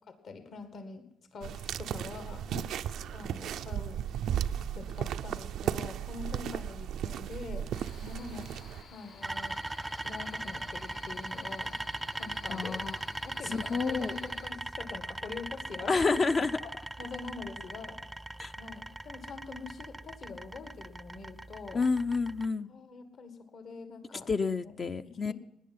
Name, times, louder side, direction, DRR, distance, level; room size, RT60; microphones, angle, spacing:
voice 1, 0.1-2.5 3.1-4.1 4.7-7.7 8.1-8.5 8.9-9.6 10.0-11.7 12.1-12.8 13.2-16.2 16.6-16.7 17.0-21.9 22.7-24.3 24.6-24.7 25.0-25.3, left 4 dB, 60° left, 8 dB, 1.8 m, -44 dB
sound 1, 1.4-8.8, right 9 dB, 80° right, 0.5 m, -35 dB
Cricket, 7.7-14.5, left 4 dB, 80° left, 6.7 m, -52 dB
sound 2, 9.2-22.5, right 2 dB, 10° right, 0.5 m, -40 dB
voice 2, 12.5-13.0 13.5-14.2 15.9-16.5 18.4-18.5 21.7-22.7 24.3-25.3, left 4 dB, 40° left, 9 dB, 0.6 m, -29 dB
17.5 x 10.5 x 5.5 m, 0.85 s
cardioid pair, 90°, 0 cm